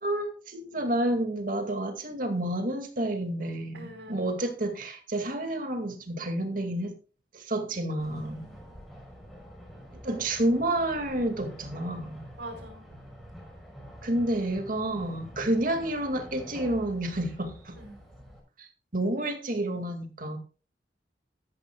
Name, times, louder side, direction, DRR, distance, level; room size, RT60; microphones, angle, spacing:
voice 1, 0.0-6.9 7.3-8.5 10.0-12.2 14.0-17.8 18.6-18.7 18.9-20.4, right 1 dB, 50° right, 2.3 m, -29 dB
voice 2, 3.7-4.3 8.2-8.6 12.4-12.9 17.8-18.0, right 1 dB, 80° right, 5.3 m, -44 dB
sound 1, 8.0-18.4, equal, ahead, 6.4 m, -47 dB
14.0 x 13.0 x 2.4 m
head